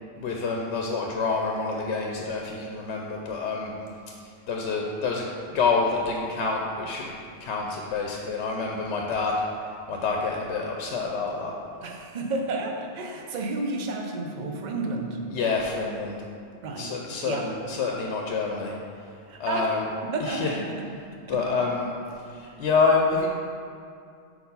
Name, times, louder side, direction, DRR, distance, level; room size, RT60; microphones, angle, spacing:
voice 1, 0.2-3.7 4.2-5.3 5.5-7.1 7.4-9.3 9.9-11.5 15.3-16.1 16.8-18.8 19.4-19.8 20.2-20.5 21.3-21.9 22.3-23.3, left 4 dB, 75° left, 0 dB, 0.8 m, -27 dB
voice 2, 11.8-15.2 16.6-16.9 17.2-17.5 19.3-19.7 20.0-20.6 21.3-21.4, right 2 dB, 50° right, 2 dB, 0.7 m, -31 dB
4.5 x 4.2 x 5.4 m, 2.4 s
omnidirectional pair, 1.2 m